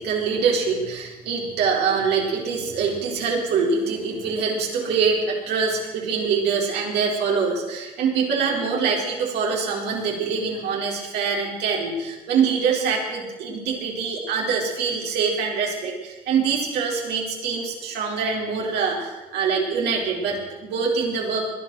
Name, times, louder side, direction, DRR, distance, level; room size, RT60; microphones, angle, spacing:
voice 1, 0.0-21.5, right 5 dB, 80° right, -1 dB, 4.2 m, -24 dB
20.5 x 11.0 x 6.2 m, 1.1 s
cardioid pair, 110°, 17 cm